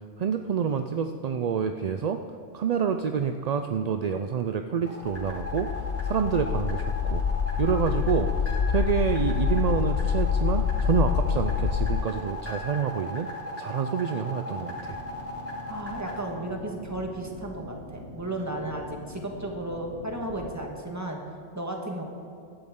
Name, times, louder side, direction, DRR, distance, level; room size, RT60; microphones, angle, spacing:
voice 1, 0.2-2.2 2.5-5.7 6.0-7.2 7.6-8.3 8.7-13.3 13.6-15.0, right 6 dB, 55° right, 7 dB, 0.5 m, -27 dB
sound 1, 4.9-16.2, left 2 dB, 10° left, 2.8 m, -37 dB
sound 2, 5.1-12.0, left 7 dB, 50° left, 0.5 m, -26 dB
Boat Water vehicle, 14.5-20.6, left 2 dB, 90° left, 2.4 m, -44 dB
voice 2, 15.7-21.2 21.5-22.0, right 1 dB, 15° right, 1 dB, 1.6 m, -34 dB
16.0 x 12.0 x 3.7 m, 2.6 s
omnidirectional pair, 1.1 m